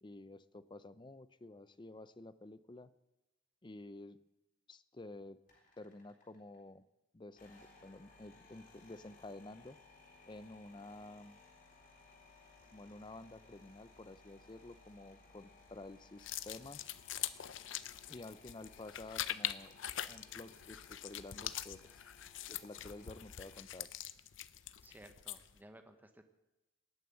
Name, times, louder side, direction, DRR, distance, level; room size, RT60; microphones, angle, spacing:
voice 1, 0.0-2.9 3.6-4.2 4.7-5.4 5.8-6.8 7.1-9.8 10.3-11.4 12.7-16.9 18.1-19.8 20.1-22.0 22.5-23.9, left 2 dB, 25° left, 15 dB, 0.6 m, -51 dB
sound 1, 5.5-6.6 7.3-23.6, left 3 dB, 45° left, 3.8 m, -62 dB
sound 2, 16.2-25.6, left 12 dB, 80° left, 0.6 m, -43 dB
voice 2, 24.8-26.2, right 1 dB, 10° right, 7 dB, 1.0 m, -57 dB
18.0 x 9.2 x 7.7 m, 0.99 s
head